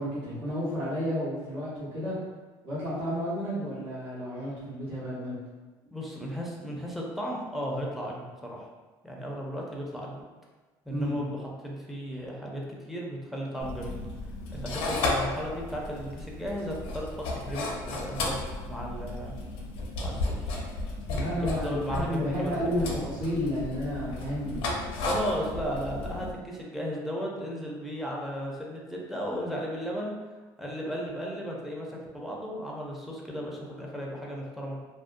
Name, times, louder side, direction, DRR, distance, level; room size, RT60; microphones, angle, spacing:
voice 1, 0.0-2.1 2.6-5.4 10.9-11.2 21.1-25.2, equal, 65° right, -10 dB, 1.1 m, -32 dB
voice 2, 5.9-8.7 9.0-10.2 10.9-11.4 11.6-12.6 12.9-14.0 14.5-19.3 20.0-20.5 21.2-23.1 25.0-30.1 30.6-34.8, equal, ahead, -3 dB, 0.5 m, -35 dB
sound 1, 13.6-26.3, left 2 dB, 75° left, 0.5 m, -34 dB
2.5 x 2.0 x 2.5 m, 1.3 s
cardioid pair, 110°, 9 cm